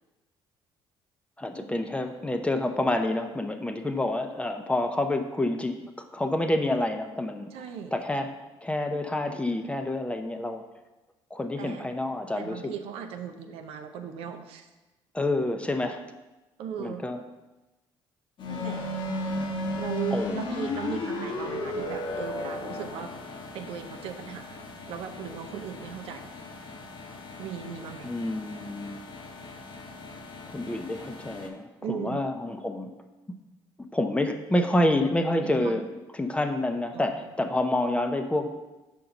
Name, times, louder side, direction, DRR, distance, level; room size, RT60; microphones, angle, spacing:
voice 1, 1.4-7.5 7.9-10.6 11.3-12.7 15.1-16.0 16.8-17.2 20.1-20.4 28.0-29.0 30.5-32.9 33.9-35.9 36.1-38.5, left 1 dB, 10° left, 6 dB, 0.6 m, -28 dB
voice 2, 7.5-7.9 11.6-11.8 12.4-14.7 16.6-17.0 18.5-18.9 19.8-23.1 23.5-24.6 24.9-26.3 27.4-28.1 31.8-32.2 35.4-35.8 36.9-37.1, right 8 dB, 75° right, 6 dB, 0.6 m, -37 dB
sound 1, 18.4-31.5, left 1 dB, 55° left, 0.9 m, -36 dB
5.2 x 3.8 x 5.9 m, 1.1 s
supercardioid pair, 85°, 10 cm